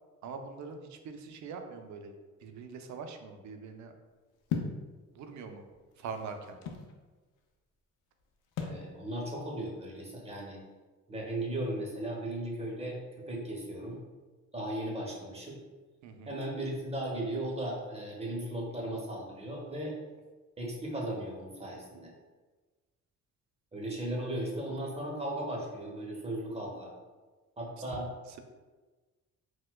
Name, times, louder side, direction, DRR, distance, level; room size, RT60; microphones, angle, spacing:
voice 1, 0.2-2.1 2.4-3.9 5.1-5.7 6.0-6.6 16.0-16.3, right 5 dB, 70° right, 6 dB, 0.5 m, -43 dB
sound 1, 4.5-4.8 5.7-6.9 8.6-8.9, left 6 dB, 85° left, 0.5 m, -35 dB
voice 2, 8.6-10.6 11.1-14.0 14.5-15.6 16.3-19.9 20.6-22.1 23.7-26.9 27.6-28.1, right 1 dB, 20° right, -2 dB, 0.8 m, -36 dB
4.2 x 2.2 x 2.2 m, 1.3 s
cardioid pair, 90°, 30 cm